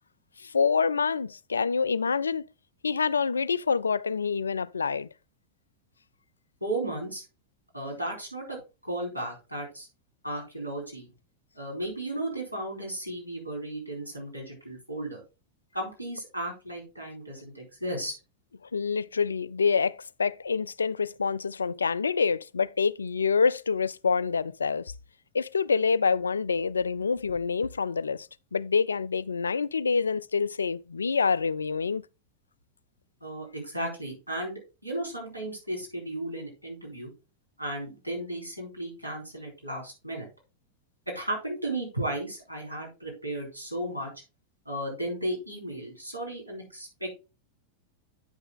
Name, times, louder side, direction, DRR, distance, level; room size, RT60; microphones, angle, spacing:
voice 1, 0.4-2.4 2.8-5.1 18.7-24.9 25.3-32.0, left 5 dB, 75° left, 0.3 m, -26 dB
voice 2, 6.6-7.2 7.7-9.9 10.2-11.1 11.5-15.2 15.7-18.1 33.2-37.1 37.6-40.3 41.1-44.1 44.7-47.2, right 1 dB, 90° right, 4.1 m, -35 dB
9.5 x 5.5 x 3.7 m
figure-of-eight pair, 90°, 0 cm